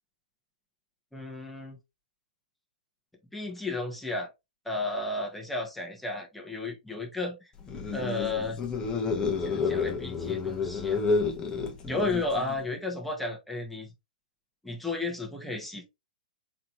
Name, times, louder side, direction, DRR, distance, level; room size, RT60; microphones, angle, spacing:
voice 1, 1.1-1.8 3.3-4.3 4.6-7.4 7.9-8.6 9.4-11.0 11.8-13.9 14.6-15.8, left 2 dB, ahead, 1.5 m, -33 dB
sound 1, 7.6-12.7, left 4 dB, 20° left, 1.1 m, -30 dB
4.5 x 3.8 x 2.7 m
hypercardioid pair, 120°, 5 cm